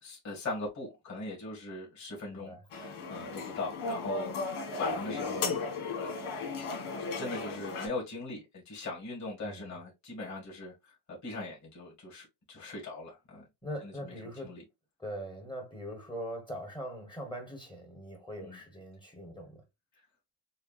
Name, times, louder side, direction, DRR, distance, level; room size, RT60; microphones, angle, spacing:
voice 1, 0.0-5.6 6.0-6.2 7.1-13.4 13.8-14.6 18.4-18.6 20.0-20.1, left 3 dB, 35° left, 2.2 m, -40 dB
voice 2, 2.3-2.6 9.5-9.8 13.6-14.6 15.0-19.6, equal, 10° left, 1.3 m, -41 dB
sound 1, 2.7-7.9, left 3 dB, 85° left, 1.7 m, -35 dB
6.6 x 2.3 x 2.5 m
cardioid pair, 140°, 49 cm